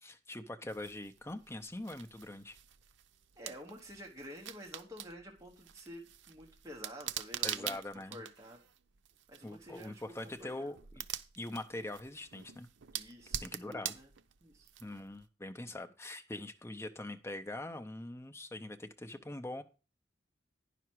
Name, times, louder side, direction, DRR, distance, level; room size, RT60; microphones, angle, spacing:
voice 1, 0.0-2.6 7.4-8.2 9.4-11.0 11.4-12.7 13.4-13.9 14.8-19.6, left 1 dB, 15° left, 8 dB, 0.6 m, -43 dB
sound 1, 0.7-15.2, right 10 dB, 85° right, 0.6 m, -45 dB
voice 2, 3.4-7.8 8.1-8.6 9.3-10.0 10.4-10.7 12.9-14.1 14.4-14.7, equal, 15° right, 0 dB, 1.3 m, -50 dB
9.9 x 5.9 x 4.6 m, 0.33 s
head